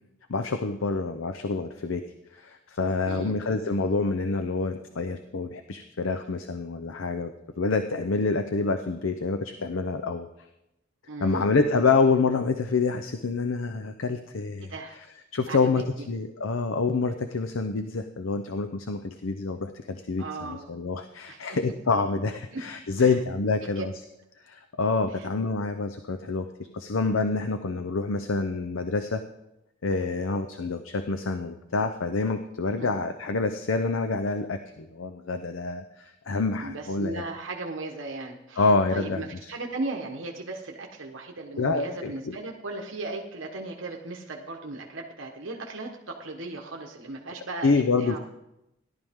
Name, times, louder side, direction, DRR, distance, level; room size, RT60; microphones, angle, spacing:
voice 1, 0.3-2.0 2.4-7.3 7.6-10.3 11.2-14.7 15.3-23.9 24.5-26.5 26.7-29.2 29.8-37.2 38.6-39.5 41.6-42.4 47.6-48.2, left 3 dB, 85° left, 7 dB, 0.7 m, -27 dB
voice 2, 3.0-3.4 11.1-11.5 14.7-15.0 15.5-16.1 20.2-20.7 21.3-21.6 22.5-22.6 23.0-23.2 23.6-23.8 25.1-25.3 32.8-32.9 36.6-48.2, right 2 dB, 75° right, 1 dB, 1.3 m, -37 dB
17.0 x 11.5 x 3.7 m, 0.90 s
head